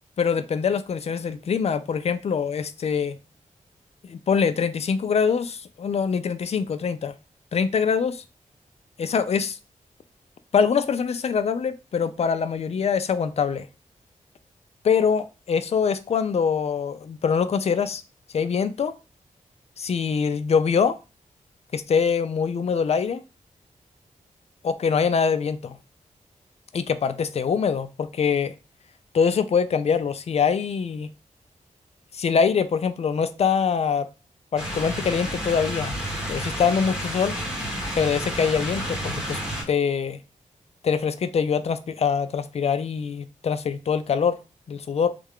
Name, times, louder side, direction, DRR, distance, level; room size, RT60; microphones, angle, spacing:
voice 1, 0.2-3.2 4.0-7.1 7.5-8.2 9.0-9.6 10.5-13.7 14.8-18.0 18.3-18.9 19.8-21.0 21.7-23.2 24.6-25.8 26.7-28.5 29.1-31.1 32.1-34.1 34.5-36.0 36.3-37.4 37.9-39.4 39.7-40.2 40.8-44.4 44.7-45.1, left 6 dB, 50° left, 0.4 m, -24 dB
sound 1, 34.6-39.6, equal, 5° right, 1.0 m, -30 dB
3.2 x 2.3 x 3.5 m
wide cardioid pair, 135°, 13 cm